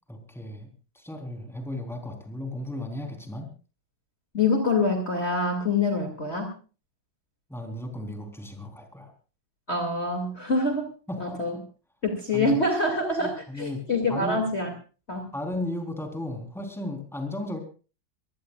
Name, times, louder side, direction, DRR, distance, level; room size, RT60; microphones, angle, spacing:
voice 1, 0.1-0.7 0.9-3.5 7.5-9.1 11.1-11.6 12.3-12.6 13.2-14.4 15.3-17.6, left 1 dB, ahead, 4 dB, 3.7 m, -35 dB
voice 2, 4.3-6.5 9.7-10.9 11.2-11.5 12.0-14.7 15.1-15.3, left 2 dB, 30° left, 3 dB, 2.7 m, -25 dB
24.0 x 18.5 x 2.4 m, 0.36 s
omnidirectional pair, 2.2 m